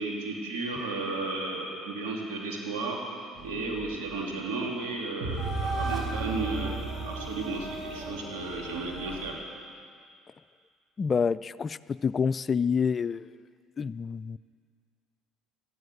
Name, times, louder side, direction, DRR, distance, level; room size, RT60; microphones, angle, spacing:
voice 1, 0.0-9.4, right 3 dB, 85° right, -2 dB, 3.2 m, -34 dB
sound 1, 3.4-9.3, right 3 dB, 45° right, 4.7 m, -35 dB
voice 2, 11.0-13.3 13.8-14.4, left 6 dB, 35° left, 17 dB, 0.4 m, -28 dB
13.5 x 11.0 x 9.2 m, 2.1 s
supercardioid pair, 80°, 0 cm